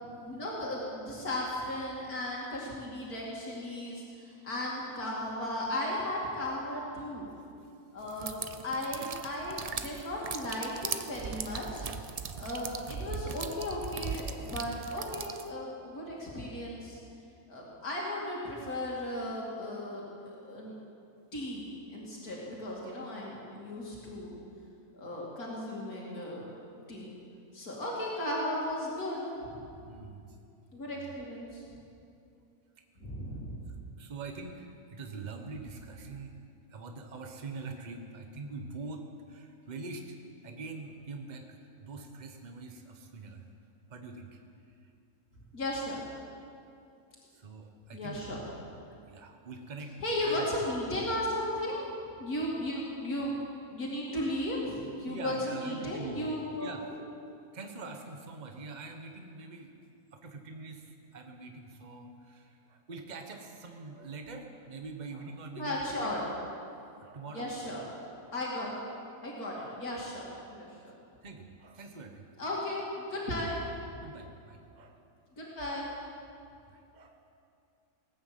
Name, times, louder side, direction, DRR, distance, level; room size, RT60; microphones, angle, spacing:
voice 1, 0.1-7.3 7.9-11.9 12.3-17.0 17.5-20.7 21.3-21.7 21.9-24.4 24.9-26.5 26.9-27.1 27.5-29.6 30.7-31.6 33.0-33.6 45.5-46.0 47.9-48.4 50.0-51.8 52.2-53.3 53.7-56.7 65.5-66.2 67.3-67.8 68.3-68.7 69.2-70.9 72.4-73.6 75.4-75.9, left 1 dB, 75° left, -4 dB, 2.8 m, -35 dB
sound 1, 8.1-15.5, right 5 dB, 70° right, 0.3 m, -39 dB
voice 2, 29.9-30.4 34.0-36.3 36.7-40.2 40.4-43.5 43.9-44.4 44.7-44.9 47.3-48.3 49.1-50.7 55.1-56.9 57.5-59.7 60.1-65.9 66.3-66.4 67.0-67.5 68.2-68.3 69.5-69.6 70.5-70.6 71.2-72.2 74.0-75.0 75.9-76.0 76.7-77.2, right 3 dB, 30° right, 4 dB, 1.2 m, -44 dB
19.0 x 9.4 x 7.5 m, 2.5 s
omnidirectional pair, 1.6 m